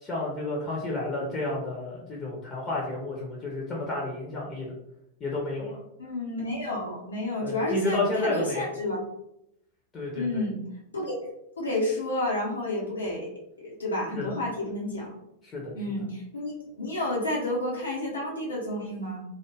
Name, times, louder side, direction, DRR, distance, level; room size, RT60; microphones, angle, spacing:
voice 1, 0.0-4.7 5.2-5.8 7.4-8.7 9.9-10.4 14.1-14.3 15.4-15.7, left 2 dB, 20° left, -4 dB, 0.7 m, -31 dB
voice 2, 6.0-9.0 10.1-10.6 10.9-11.2 11.6-13.3 13.6-15.1 15.7-19.2, left 1 dB, 75° left, -4 dB, 0.8 m, -30 dB
2.3 x 2.1 x 3.2 m, 0.81 s
figure-of-eight pair, 90°, 0 cm